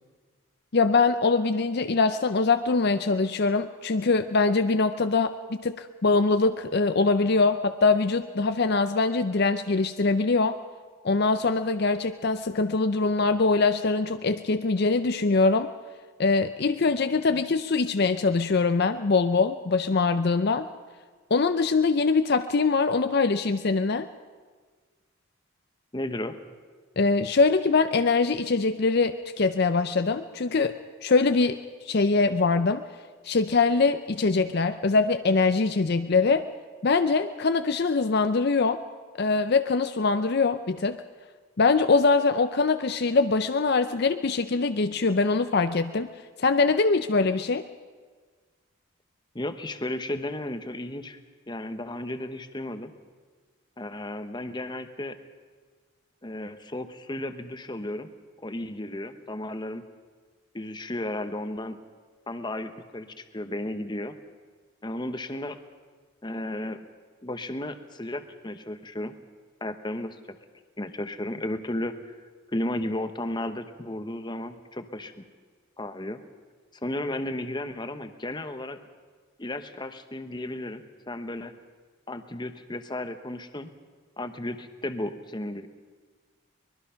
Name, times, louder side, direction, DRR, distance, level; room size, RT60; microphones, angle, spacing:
voice 1, 0.7-10.6 11.0-15.7 16.2-20.7 21.3-24.1 27.0-30.8 31.0-32.8 33.2-36.5 36.8-38.8 39.2-41.0 41.6-46.1 46.4-47.6, left 4 dB, 50° left, 9 dB, 0.5 m, -23 dB
voice 2, 25.9-26.4 49.3-51.2 51.5-52.9 53.8-55.2 56.2-58.1 58.4-59.8 60.5-61.8 62.3-64.2 64.8-65.6 66.2-66.8 67.2-69.1 69.6-70.2 70.8-72.1 72.5-75.2 75.8-76.2 76.8-78.8 79.4-81.5 82.1-83.7 84.2-85.7, left 1 dB, 20° left, 9 dB, 1.0 m, -34 dB
23.5 x 21.0 x 5.7 m, 1.5 s
head